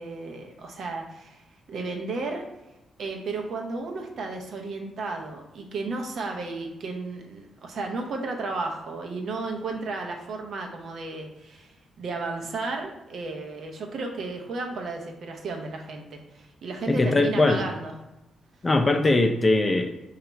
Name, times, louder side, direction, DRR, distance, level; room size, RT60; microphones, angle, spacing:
voice 1, 0.0-2.5 3.0-17.9, right 3 dB, 70° right, 2 dB, 0.6 m, -33 dB
voice 2, 16.9-17.6 18.6-19.9, left 2 dB, 30° left, 5 dB, 0.4 m, -21 dB
2.9 x 2.4 x 4.2 m, 0.97 s
supercardioid pair, 55°, 0 cm